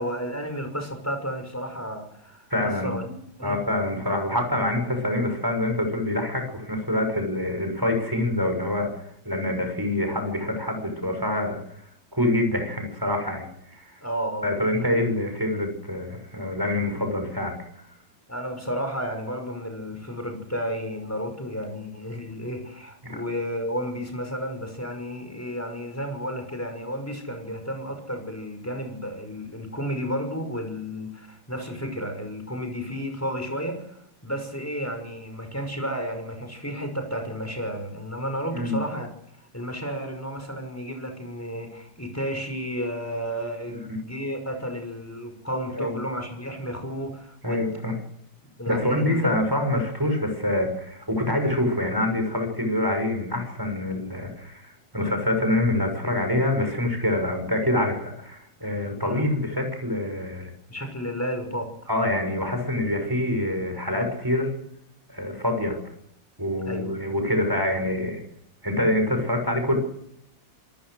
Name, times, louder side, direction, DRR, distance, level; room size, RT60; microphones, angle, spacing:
voice 1, 0.0-3.0 3.4-3.6 14.0-14.5 18.3-34.0 34.2-39.1 39.5-47.7 48.6-49.3 59.0-59.3 60.7-61.7 66.7-66.9, equal, 5° left, 5 dB, 5.9 m, -32 dB
voice 2, 2.5-2.9 3.4-11.6 12.1-13.9 14.4-17.5 23.0-23.2 38.5-38.8 43.9-44.0 45.7-46.0 47.4-48.0 48.7-60.5 61.9-64.5 65.1-65.8 66.4-68.2 68.6-69.7, left 1 dB, 10° right, 5 dB, 6.6 m, -26 dB
27.0 x 19.5 x 6.5 m, 0.78 s
omnidirectional pair, 2.1 m